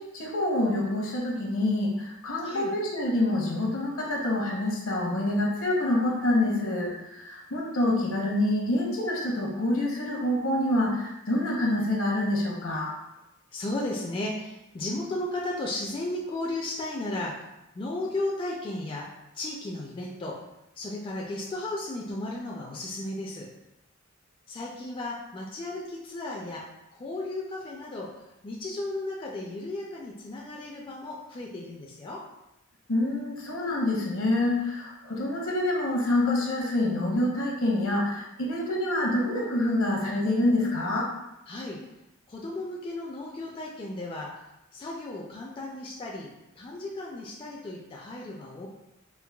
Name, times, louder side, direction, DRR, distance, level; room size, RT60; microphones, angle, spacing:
voice 1, 0.0-12.9 32.9-41.1, left 1 dB, 70° left, -2 dB, 0.8 m, -26 dB
voice 2, 13.5-17.4 17.7-19.1 19.3-20.4 20.8-23.5 24.5-26.6 26.9-32.2 41.5-41.8 42.3-44.3 44.7-46.3 46.6-48.7, left 2 dB, 25° left, -3 dB, 0.3 m, -34 dB
4.5 x 2.1 x 2.2 m, 0.92 s
head